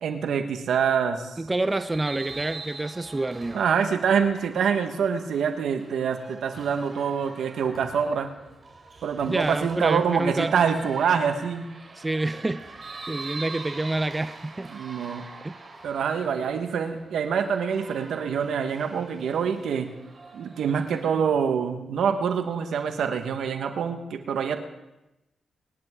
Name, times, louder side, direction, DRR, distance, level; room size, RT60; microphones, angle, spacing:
voice 1, 0.0-1.4 3.5-8.3 9.0-11.6 14.7-15.2 15.8-19.9 20.3-24.6, right 7 dB, 80° right, 7 dB, 1.4 m, -25 dB
voice 2, 1.4-3.6 9.3-10.5 12.0-12.6 13.1-14.7 15.4-15.5, right 2 dB, 25° right, 11 dB, 0.6 m, -28 dB
sound 1, 1.6-21.0, right 3 dB, 45° right, 3.2 m, -44 dB
23.5 x 11.0 x 3.7 m, 0.96 s
cardioid pair, 60°, 0 cm